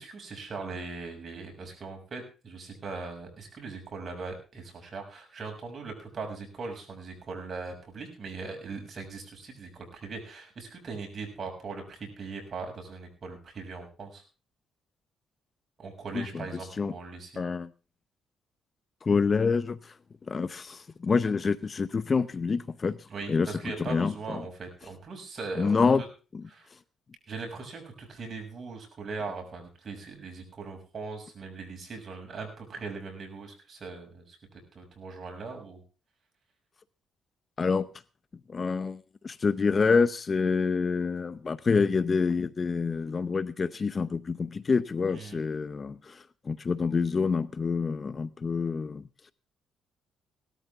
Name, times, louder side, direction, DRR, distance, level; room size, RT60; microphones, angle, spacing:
voice 1, 0.0-14.2 15.8-17.3 23.1-26.1 26.5-26.7 27.3-35.8 45.1-45.4, right 4 dB, 45° right, 2 dB, 6.7 m, -40 dB
voice 2, 17.4-17.7 19.0-19.9 20.3-23.0 23.3-23.5 23.8-24.1 25.6-26.0 26.3-26.4 37.6-37.9 38.5-49.0, left 5 dB, 35° left, 15 dB, 0.7 m, -27 dB
18.0 x 13.5 x 3.6 m, 0.36 s
cardioid pair, 90°, 0 cm